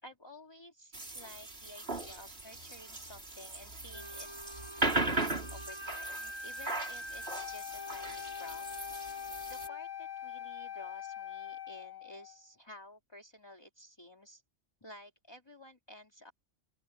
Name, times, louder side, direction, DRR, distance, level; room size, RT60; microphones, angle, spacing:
voice 1, 0.0-4.3 4.8-8.7 9.5-14.4 14.8-16.3, left 1 dB, 20° left, 2.8 m, -53 dB
sound 1, 0.9-9.7, right 2 dB, 55° right, 3.8 m, -38 dB
Wind instrument woodwind instrument, 3.9-9.8, equal, 20° right, 8.0 m, -47 dB
Wind instrument woodwind instrument 2, 7.3-12.4, left 10 dB, 85° left, 1.4 m, -43 dB
open air
omnidirectional pair, 1.3 m